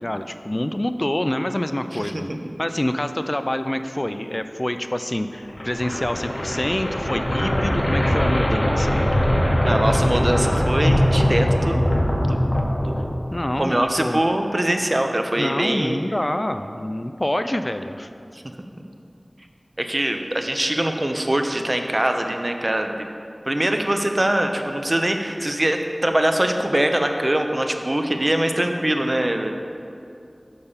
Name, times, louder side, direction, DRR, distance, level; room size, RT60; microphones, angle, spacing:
voice 1, 0.0-2.3 2.6-9.0 13.3-14.2 15.4-18.1, left 1 dB, 30° left, 9 dB, 0.3 m, -26 dB
voice 2, 1.9-2.4 9.7-11.9 12.2-12.5 12.8-13.1 13.6-16.0 19.8-23.1 23.4-29.5, right 1 dB, 40° right, 5 dB, 0.7 m, -23 dB
sound 1, 5.4-13.5, equal, 70° left, 1.3 m, -21 dB
6.8 x 6.7 x 5.5 m, 2.4 s
wide cardioid pair, 50°, 0 cm